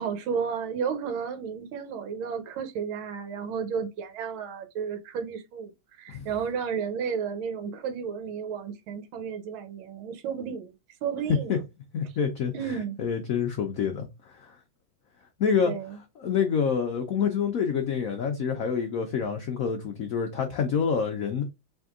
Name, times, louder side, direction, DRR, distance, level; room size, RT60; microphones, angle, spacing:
voice 1, 0.0-5.7 6.0-10.7 11.0-11.6 12.5-13.0 15.7-16.0, right 6 dB, 85° right, 1.6 m, -32 dB
voice 2, 11.9-14.6 15.4-15.7 16.2-21.4, left 6 dB, 80° left, 0.7 m, -27 dB
3.6 x 3.3 x 3.5 m
omnidirectional pair, 2.2 m